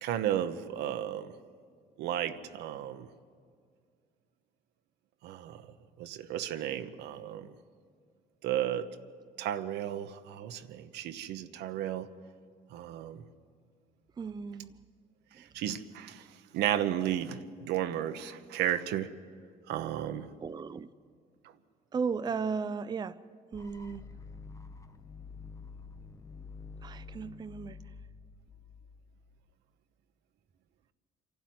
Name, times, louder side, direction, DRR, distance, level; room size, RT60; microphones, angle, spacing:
voice 1, 0.0-1.3 2.0-3.1 5.2-5.7 6.0-7.5 8.4-8.9 9.4-12.1 12.7-13.2 15.4-19.1 19.7-20.3, right 11 dB, 85° right, 1.0 m, -33 dB
voice 2, 14.2-14.8 15.3-15.4 20.4-20.9 21.9-23.2 23.5-24.1 26.8-27.9, right 5 dB, 25° right, 0.5 m, -35 dB
sound 1, 23.5-29.5, left 4 dB, 20° left, 0.8 m, -48 dB
26.5 x 12.0 x 9.4 m
cardioid pair, 110°, 17 cm